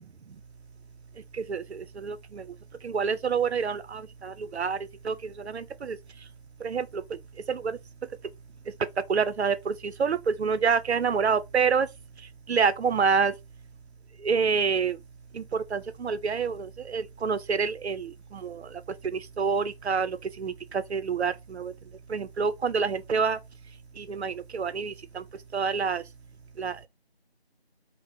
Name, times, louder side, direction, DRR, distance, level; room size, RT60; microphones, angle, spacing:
voice 1, 1.5-2.4 2.8-4.8 5.0-5.1 5.5-6.0 6.6-6.9 7.5-7.6 9.1-11.9 12.5-13.3 14.2-15.0 15.3-15.4 15.7-18.1 18.4-18.6 19.1-21.7 22.1-23.4 24.0-25.2 25.5-26.0 26.6-26.9, right 5 dB, 80° right, 0.5 m, -27 dB
3.9 x 2.1 x 2.5 m
figure-of-eight pair, 175°, 32 cm